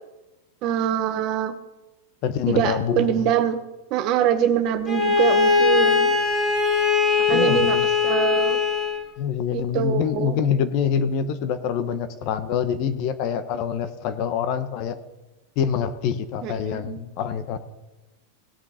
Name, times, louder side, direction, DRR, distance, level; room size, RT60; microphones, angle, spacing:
voice 1, 0.6-1.5 2.5-3.6 3.9-6.2 7.3-8.6 9.5-10.4 16.4-17.0, right 10 dB, 40° right, 9 dB, 1.1 m, -24 dB
voice 2, 2.2-3.3 7.3-7.8 9.2-15.0 15.6-17.6, left 8 dB, 45° left, 11 dB, 1.1 m, -25 dB
Bowed string instrument, 4.9-9.1, left 5 dB, 15° left, 2.1 m, -20 dB
18.0 x 7.3 x 5.8 m, 1.0 s
supercardioid pair, 150°, 0 cm